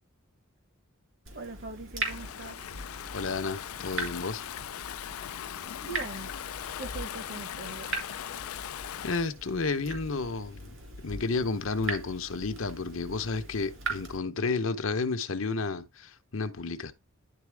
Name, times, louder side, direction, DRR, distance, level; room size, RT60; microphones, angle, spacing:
voice 1, 1.3-2.6 5.8-6.3 6.8-7.9, right 3 dB, 50° right, 1.2 m, -41 dB
Water tap faucet / Drip, 1.3-14.2, right 3 dB, 70° right, 3.3 m, -40 dB
Stream / Ocean, 2.0-9.3, left 10 dB, 85° left, 0.4 m, -39 dB
voice 2, 3.1-4.4 9.0-10.7 11.0-16.9, left 4 dB, 70° left, 0.9 m, -31 dB
10.5 x 4.2 x 3.4 m
head